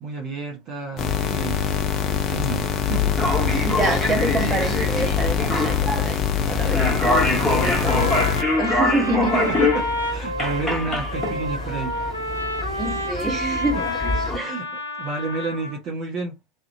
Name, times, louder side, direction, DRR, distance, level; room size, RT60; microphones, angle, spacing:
voice 1, 0.0-1.6 2.3-3.2 6.7-8.2 9.3-9.8 10.1-12.3 14.3-14.7 15.0-16.3, right 4 dB, 35° right, 0.6 m, -31 dB
sound 1, 1.0-8.4, left 7 dB, 30° left, 0.5 m, -24 dB
sound 2, 3.1-14.4, left 2 dB, 5° left, 1.1 m, -25 dB
voice 2, 3.6-8.2 8.6-9.6 12.8-13.9 14.3-14.5, right 2 dB, 15° right, 1.0 m, -27 dB
Trumpet, 7.4-15.8, left 1 dB, 80° left, 0.6 m, -29 dB
2.4 x 2.1 x 2.6 m
figure-of-eight pair, 90°, 0 cm